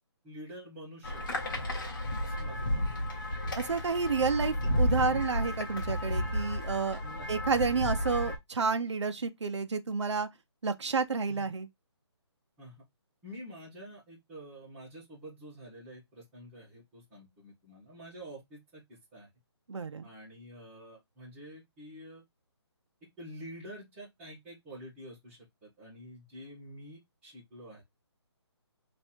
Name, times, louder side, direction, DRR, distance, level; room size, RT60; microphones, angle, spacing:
voice 1, 0.2-1.4 2.2-2.9 7.0-7.5 11.3-11.5 12.6-12.8 13.2-19.3 20.0-22.2 23.2-27.8, equal, 10° right, 1.7 m, -48 dB
sound 1, 1.0-8.4, left 1 dB, 45° left, 1.4 m, -32 dB
voice 2, 3.6-7.0 7.3-10.3 10.6-11.7 19.7-20.1, right 4 dB, 75° right, 0.9 m, -30 dB
3.6 x 3.2 x 4.4 m
hypercardioid pair, 175°, 15 cm